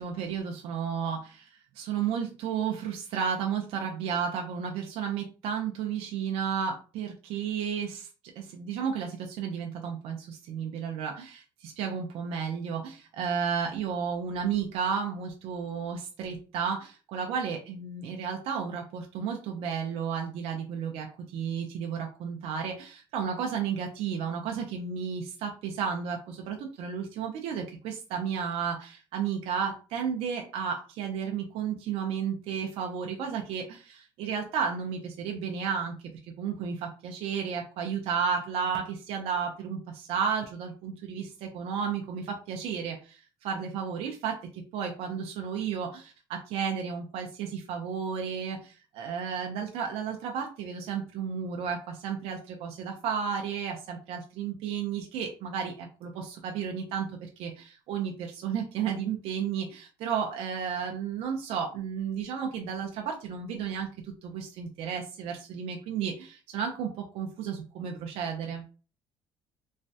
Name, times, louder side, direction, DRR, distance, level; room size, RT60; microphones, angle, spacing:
voice 1, 0.0-8.1 8.4-36.0 36.4-68.6, right 7 dB, 75° right, 2 dB, 0.5 m, -33 dB
3.1 x 2.2 x 2.7 m, 0.36 s
cardioid pair, 115°, 10 cm